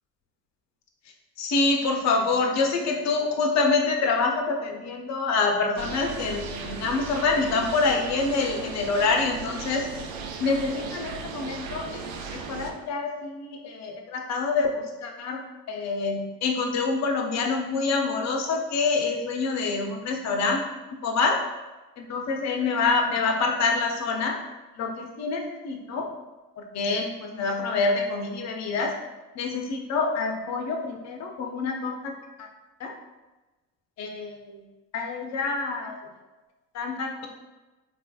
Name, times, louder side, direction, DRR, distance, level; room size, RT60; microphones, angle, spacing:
voice 1, 1.4-9.9 10.4-20.6 21.0-21.4 22.0-24.4 24.8-26.1 26.6-28.9 29.4-32.1 32.4-32.5 32.8-32.9 34.0-34.6 34.9-36.0 36.7-37.3, left 4 dB, 35° left, 3 dB, 0.7 m, -26 dB
sound 1, 5.8-12.7, right 5 dB, 50° right, 0.6 m, -37 dB
4.2 x 3.2 x 2.2 m, 1.1 s
figure-of-eight pair, 60°, 50 cm